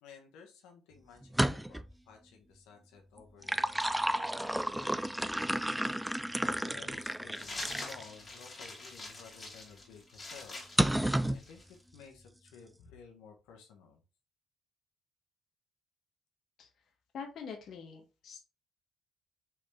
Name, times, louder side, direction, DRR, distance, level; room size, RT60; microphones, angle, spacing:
voice 1, 0.0-5.1 6.4-10.6 11.3-11.6 11.9-14.0, left 6 dB, 90° left, 3 dB, 1.2 m, -54 dB
sound 1, 1.2-1.9 3.2-8.0 8.7-8.8 10.8-11.4, right 1 dB, 5° right, 0.3 m, -31 dB
sound 2, 7.3-11.8, left 2 dB, 30° left, 2.1 m, -45 dB
voice 2, 17.1-18.4, left 6 dB, 65° left, 3 dB, 0.9 m, -44 dB
4.7 x 3.3 x 3.4 m, 0.31 s
cardioid pair, 85°, 0 cm